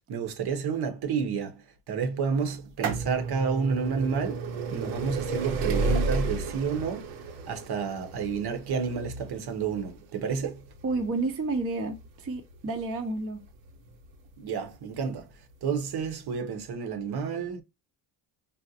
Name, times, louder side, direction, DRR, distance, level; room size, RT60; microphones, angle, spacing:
voice 1, 0.1-10.6 14.4-17.6, right 6 dB, 50° right, 0.9 m, -30 dB
sound 1, 2.5-14.1 15.0-15.1 16.0-16.1 16.3-16.4, right 3 dB, 80° right, 1.0 m, -32 dB
voice 2, 10.8-13.4, right 3 dB, 30° right, 0.7 m, -30 dB
4.0 x 2.0 x 2.7 m
supercardioid pair, 75°, 48 cm